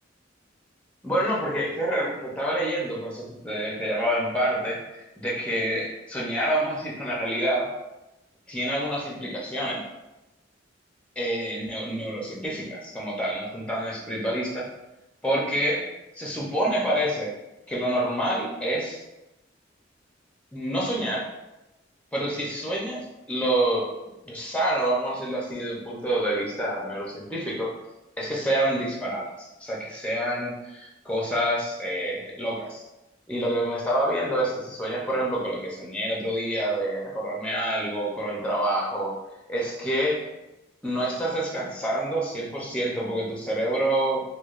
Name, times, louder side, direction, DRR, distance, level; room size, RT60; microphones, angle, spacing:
voice 1, 1.0-7.7 8.5-9.8 11.2-14.7 15.2-15.9 16.2-17.3 17.7-19.0 20.5-21.3 22.1-23.9 24.3-27.7 28.2-32.8 33.3-39.2 39.5-40.2 40.8-44.2, right 1 dB, 5° left, -4 dB, 0.5 m, -27 dB
4.8 x 2.1 x 2.4 m, 0.97 s
head